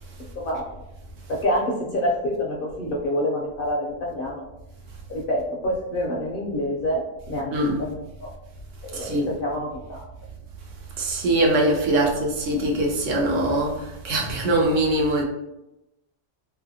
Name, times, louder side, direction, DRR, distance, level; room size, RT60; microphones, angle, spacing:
voice 1, 0.3-0.6 1.3-4.5 5.1-8.3 8.8-10.1 11.9-12.0, equal, 60° left, -2 dB, 0.6 m, -27 dB
voice 2, 8.9-9.3 11.0-15.2, right 1 dB, 80° right, -1 dB, 1.1 m, -22 dB
2.7 x 2.7 x 2.7 m, 0.94 s
omnidirectional pair, 1.3 m